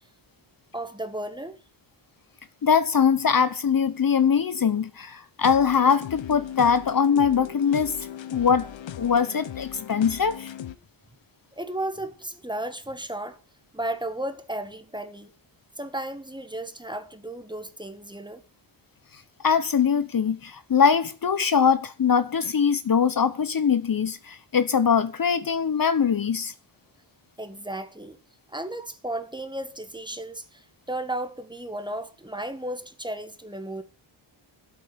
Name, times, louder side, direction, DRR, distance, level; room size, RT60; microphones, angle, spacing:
voice 1, 0.7-1.6 11.5-13.4 13.7-15.3 15.8-18.4 27.4-28.2 28.5-33.8, right 1 dB, 10° right, 1.6 m, -34 dB
voice 2, 2.6-8.7 9.0-10.5 19.4-26.5, left 6 dB, 45° left, 1.0 m, -22 dB
sound 1, 5.4-10.8, left 10 dB, 70° left, 1.0 m, -38 dB
12.5 x 8.6 x 7.7 m
wide cardioid pair, 155°, 47 cm